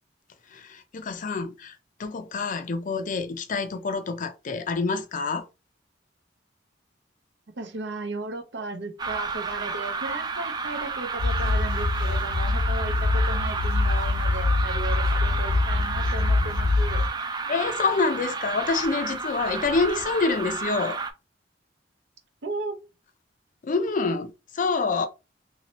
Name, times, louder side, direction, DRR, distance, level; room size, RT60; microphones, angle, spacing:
voice 1, 0.5-5.5 17.5-21.0 23.6-25.1, left 4 dB, 45° left, 0.4 m, -27 dB
voice 2, 7.5-17.1 22.4-22.8, right 2 dB, 70° right, 0.7 m, -35 dB
sound 1, 9.0-21.1, right 4 dB, 25° right, 0.4 m, -31 dB
sound 2, 11.2-17.1, left 3 dB, 80° left, 0.7 m, -24 dB
3.0 x 2.8 x 3.0 m
head